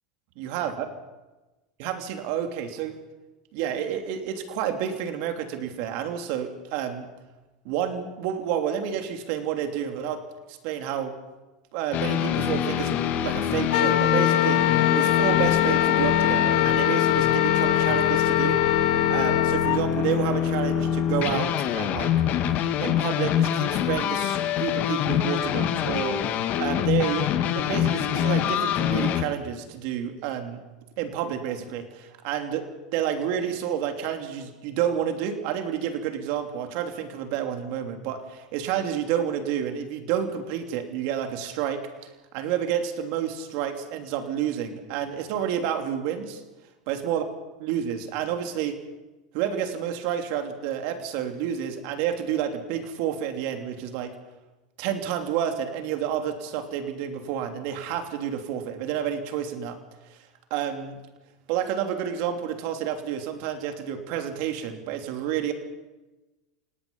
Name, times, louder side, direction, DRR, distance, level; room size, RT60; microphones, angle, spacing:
voice 1, 0.4-0.9 1.8-3.0 3.5-7.1 7.6-11.1 11.7-12.9 13.2-18.6 19.1-22.2 22.8-26.2 26.6-30.6 31.0-41.9 42.3-46.4 46.9-47.2 47.6-48.8 49.3-54.1 54.8-59.8 60.1-60.2 60.5-61.0 61.5-65.5, right 9 dB, 60° right, 5 dB, 3.1 m, -29 dB
sound 1, 11.9-29.2, left 9 dB, 45° left, 1.8 m, -25 dB
Wind instrument woodwind instrument, 13.7-19.8, left 15 dB, 70° left, 1.0 m, -23 dB
28.0 x 18.5 x 5.6 m, 1.1 s
supercardioid pair, 115°, 4 cm